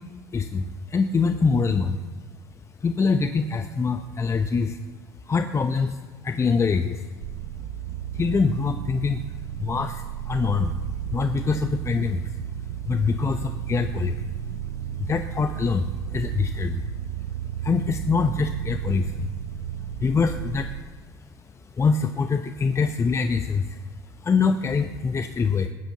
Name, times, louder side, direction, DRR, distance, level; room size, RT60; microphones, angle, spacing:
voice 1, 0.3-2.0 2.8-4.8 5.3-7.0 8.1-9.2 9.6-10.8 11.1-12.4 12.9-14.3 15.0-16.9 17.6-19.3 20.0-20.7 21.8-23.8 24.2-25.7, left 5 dB, 25° left, 8 dB, 0.8 m, -24 dB
sound 1, 7.2-20.8, right 11 dB, 60° right, 0.6 m, -33 dB
19.5 x 7.9 x 7.4 m, 1.4 s
hypercardioid pair, 70°, 12 cm